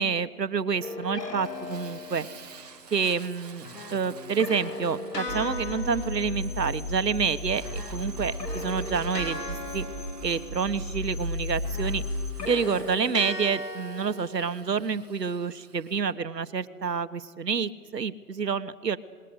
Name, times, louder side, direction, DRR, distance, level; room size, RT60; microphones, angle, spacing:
voice 1, 0.0-2.3 2.9-9.9 10.2-12.0 12.4-19.0, right 6 dB, 85° right, 12 dB, 1.4 m, -28 dB
sound 1, 0.8-2.7 3.6-7.3 7.6-11.2 11.6-15.1, left 2 dB, 80° left, 3.8 m, -38 dB
Fire, 1.4-16.0, right 6 dB, 25° right, 1.5 m, -50 dB
sound 2, 5.3-12.3, left 1 dB, 5° right, 4.3 m, -34 dB
27.0 x 21.0 x 8.2 m, 1.5 s
hypercardioid pair, 165°, 48 cm